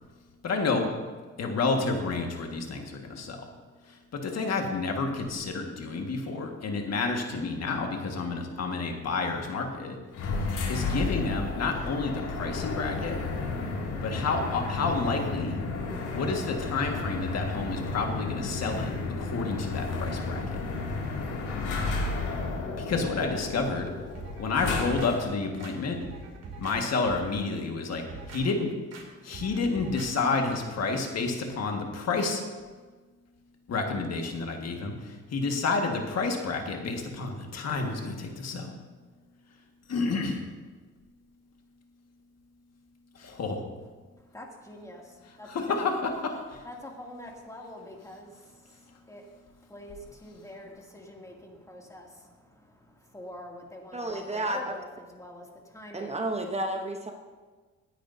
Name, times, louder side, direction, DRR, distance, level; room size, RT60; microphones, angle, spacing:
voice 1, 0.4-0.9 1.4-3.5 4.1-10.0 10.7-13.2 14.0-15.6 16.1-20.4 22.8-23.9 24.4-26.0 26.6-28.7 29.2-32.4 33.7-38.7 39.9-40.4 43.1-43.6 45.4-46.4, left 4 dB, 55° left, 3 dB, 1.7 m, -30 dB
Elevator Sound Effect Stereo, 10.1-25.3, left 3 dB, 85° left, 2.4 m, -32 dB
sound 1, 24.2-25.1 25.6-26.8 27.0-27.4 27.9-28.4 28.9-29.0 29.3-30.1 30.5-30.6, right 4 dB, 55° right, 2.6 m, -43 dB
voice 2, 44.3-45.8 46.6-49.2 49.5-56.2, left 1 dB, 10° left, -1 dB, 2.4 m, -46 dB
voice 3, 53.9-54.8 55.9-57.1, right 1 dB, 20° right, 4 dB, 0.9 m, -31 dB
17.5 x 10.0 x 2.7 m, 1.4 s
cardioid pair, 90°, 30 cm